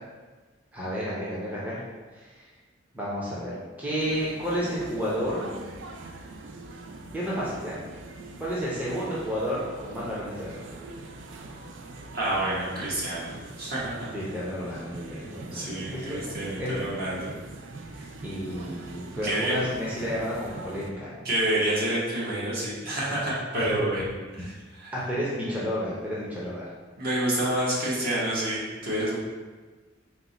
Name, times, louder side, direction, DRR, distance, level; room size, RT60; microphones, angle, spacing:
voice 1, 0.7-1.8 2.1-2.5 2.9-5.5 7.1-7.8 8.4-10.6 14.1-16.2 16.6-16.8 17.9-21.2 23.5-23.7 24.9-26.7, equal, 10° right, -8 dB, 0.6 m, -31 dB
sound 1, 4.0-20.9, right 2 dB, 75° right, 0.4 m, -43 dB
voice 2, 12.1-13.3 13.6-14.1 15.5-17.3 19.2-19.5 21.2-24.9 27.0-29.2, right 1 dB, 50° right, -7 dB, 1.1 m, -28 dB
4.3 x 2.1 x 3.9 m, 1.3 s
head